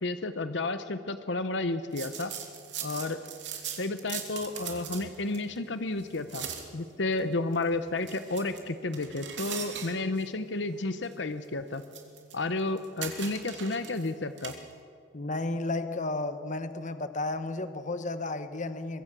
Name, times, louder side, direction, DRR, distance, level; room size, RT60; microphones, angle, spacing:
voice 1, 0.0-2.3 2.8-3.2 3.8-6.5 6.7-11.8 12.3-14.5, left 2 dB, 75° left, 10 dB, 0.9 m, -31 dB
sound 1, 1.9-14.8, right 8 dB, 75° right, 3.1 m, -42 dB
voice 2, 15.1-19.0, left 2 dB, 45° left, 10 dB, 1.1 m, -33 dB
24.0 x 23.0 x 6.2 m, 2.3 s
head